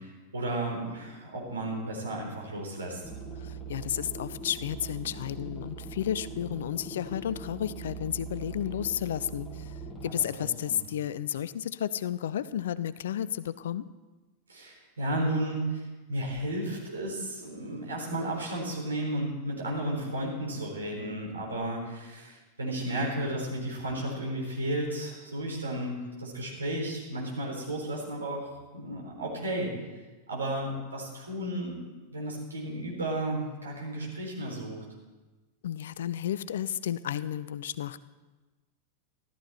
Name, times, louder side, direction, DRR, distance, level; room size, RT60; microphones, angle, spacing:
voice 1, 0.0-3.0 10.0-10.8 14.5-29.7 30.3-31.8 32.1-34.8, right 1 dB, 75° right, -2 dB, 3.8 m, -33 dB
sound 1, 3.0-10.2, right 4 dB, 10° left, 1.9 m, -41 dB
voice 2, 3.4-9.7 10.0-13.9 35.6-38.0, left 10 dB, 60° left, 17 dB, 0.4 m, -32 dB
13.5 x 13.0 x 4.4 m, 1.2 s
figure-of-eight pair, 90°, 0 cm